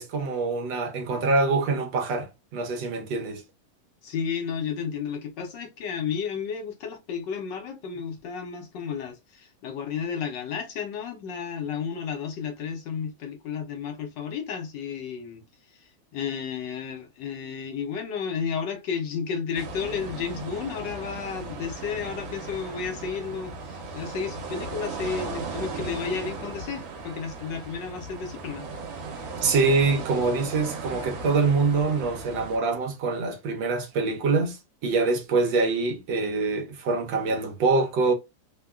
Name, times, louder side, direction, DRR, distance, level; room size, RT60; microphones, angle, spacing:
voice 1, 0.0-3.4 29.4-38.1, right 3 dB, 75° right, 1.4 m, -25 dB
voice 2, 4.0-15.4 16.1-28.7, left 6 dB, 70° left, 1.3 m, -32 dB
sound 1, 19.5-32.6, right 4 dB, 90° right, 1.5 m, -37 dB
3.5 x 2.2 x 2.3 m
omnidirectional pair, 2.1 m